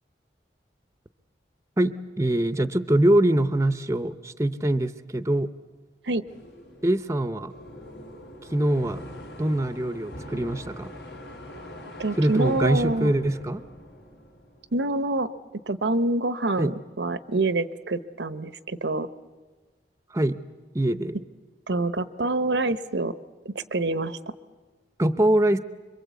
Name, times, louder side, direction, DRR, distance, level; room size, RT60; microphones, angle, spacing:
voice 1, 1.8-5.5 6.8-7.5 8.5-9.0 9.4-10.9 12.2-13.6 16.6-16.7 20.1-20.4 20.7-21.2 25.0-25.6, right 1 dB, 15° right, 12 dB, 0.7 m, -23 dB
sound 1, 6.3-15.1, left 1 dB, 80° left, 3.9 m, -42 dB
voice 2, 12.0-13.1 14.7-15.3 15.7-19.1 21.7-23.1 23.4-24.2, right 2 dB, 80° right, 14 dB, 0.9 m, -26 dB
26.0 x 23.0 x 8.3 m, 1.4 s
head